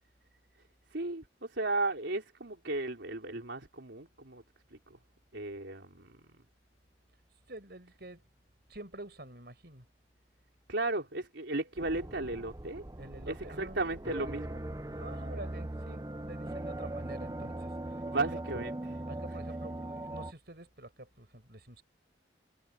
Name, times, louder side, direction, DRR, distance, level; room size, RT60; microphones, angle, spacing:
voice 1, 0.9-4.4 4.7-5.0 5.3-6.2 10.7-12.8 13.3-14.6 18.1-19.0, right 2 dB, 90° right, 3.8 m, -35 dB
voice 2, 7.5-8.3 8.7-9.9 13.0-13.8 14.9-18.4 19.1-21.8, right 1 dB, 60° right, 5.8 m, -48 dB
sound 1, 11.8-20.3, right 1 dB, 20° right, 0.7 m, -40 dB
head